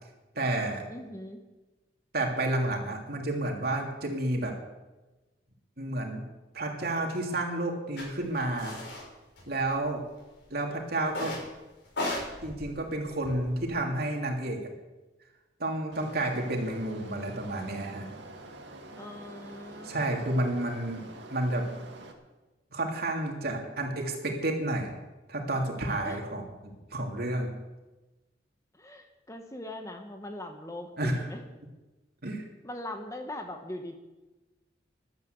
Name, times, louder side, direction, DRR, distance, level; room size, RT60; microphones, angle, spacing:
voice 1, 0.3-0.8 2.1-4.5 5.8-6.2 6.5-8.8 9.5-10.0 10.5-11.4 12.4-14.6 15.6-18.1 19.8-21.0 21.3-21.6 22.7-24.9 25.3-27.5 31.0-31.3 32.2-32.4, right 1 dB, 55° right, 1 dB, 3.0 m, -30 dB
voice 2, 0.9-1.4 19.0-20.2 26.0-26.2 28.7-31.4 32.6-33.9, left 1 dB, 15° left, 5 dB, 1.4 m, -41 dB
sound 1, 8.0-8.1 8.6-9.0 9.4-10.1 11.1-11.5 11.9-13.7, left 1 dB, 70° left, 6.5 m, -36 dB
sound 2, 15.9-22.1, right 2 dB, 80° right, 2.3 m, -47 dB
13.5 x 12.0 x 8.1 m, 1.1 s
head